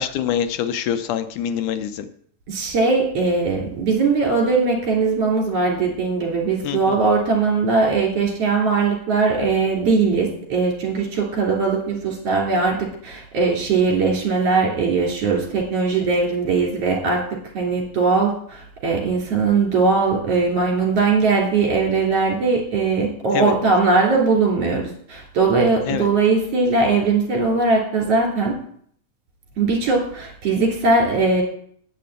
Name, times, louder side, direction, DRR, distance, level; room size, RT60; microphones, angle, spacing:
voice 1, 0.0-2.1 6.6-7.0 23.3-23.6 25.9-26.1, left 9 dB, 85° left, 10 dB, 2.3 m, -25 dB
voice 2, 2.5-17.2 17.5-28.5 29.6-31.4, right 4 dB, 50° right, 0 dB, 3.9 m, -20 dB
9.4 x 6.7 x 8.0 m, 0.62 s
omnidirectional pair, 3.6 m